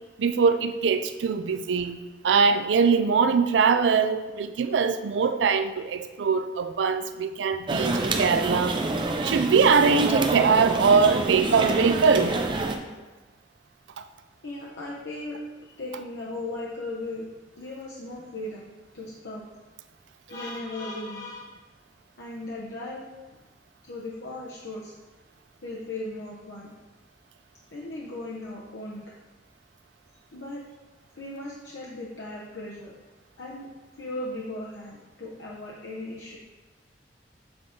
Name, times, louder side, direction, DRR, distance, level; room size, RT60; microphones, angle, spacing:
voice 1, 0.2-7.9 8.2-8.8 9.2-12.3 14.0-14.1, right 5 dB, 90° right, 10 dB, 0.4 m, -22 dB
sound 1, 7.7-12.8, right 2 dB, 25° right, 0.4 m, -27 dB
voice 2, 14.4-15.4 15.8-17.3 17.6-18.7 18.9-19.5 20.3-21.5 22.2-23.0 23.8-24.9 25.6-26.7 27.7-29.2 30.3-30.6 31.1-32.9 33.4-36.4, left 2 dB, 80° left, -4 dB, 0.8 m, -37 dB
7.2 x 3.9 x 3.6 m, 1.2 s
head